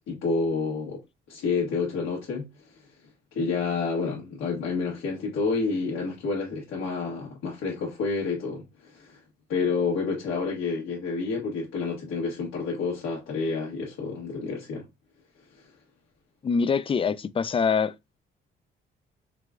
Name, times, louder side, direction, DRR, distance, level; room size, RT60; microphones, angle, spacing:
voice 1, 0.1-1.0 1.3-2.5 3.3-9.2 9.5-14.9, left 4 dB, 90° left, 1.3 m, -29 dB
voice 2, 16.4-17.9, left 5 dB, 25° left, 0.3 m, -24 dB
4.9 x 2.3 x 3.6 m
cardioid pair, 90°, 20 cm